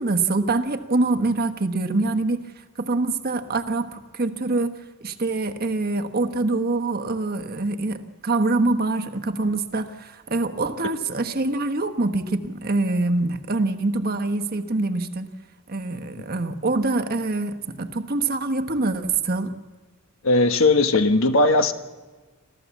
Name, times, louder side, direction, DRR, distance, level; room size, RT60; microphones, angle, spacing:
voice 1, 0.0-2.4 2.8-15.3 15.7-19.6, right 2 dB, 45° right, 8 dB, 1.2 m, -25 dB
voice 2, 20.2-21.7, left 2 dB, 65° left, 8 dB, 1.3 m, -18 dB
27.5 x 14.0 x 7.3 m, 1.3 s
head